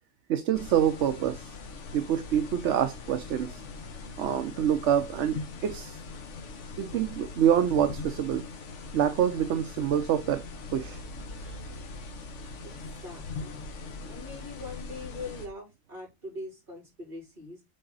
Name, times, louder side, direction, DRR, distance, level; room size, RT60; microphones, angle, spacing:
voice 1, 0.3-1.6 1.9-3.6 4.2-6.0 6.8-8.4 8.9-10.4 10.7-11.0 11.4-11.5, right 9 dB, 80° right, 1.0 m, -26 dB
sound 1, 0.5-15.5, left 3 dB, 90° left, 1.4 m, -41 dB
voice 2, 12.6-13.6 14.1-17.6, left 2 dB, 45° right, 4.4 m, -42 dB
7.8 x 3.9 x 3.9 m
omnidirectional pair, 1.2 m